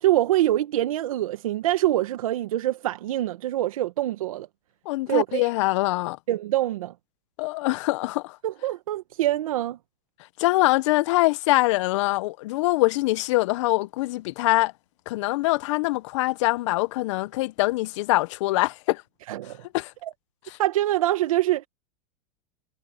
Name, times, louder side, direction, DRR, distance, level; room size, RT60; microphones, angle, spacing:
voice 1, 0.0-4.5 5.1-5.5 6.3-6.9 8.4-9.8 19.3-19.6 20.0-20.1 20.6-21.7, right 14 dB, 85° right, 1.4 m, -24 dB
voice 2, 4.9-6.2 7.4-8.4 10.4-14.7 15.1-19.0 19.7-19.9 20.5-20.6, left 20 dB, 60° left, 0.6 m, -23 dB
supercardioid pair, 150°, 17 cm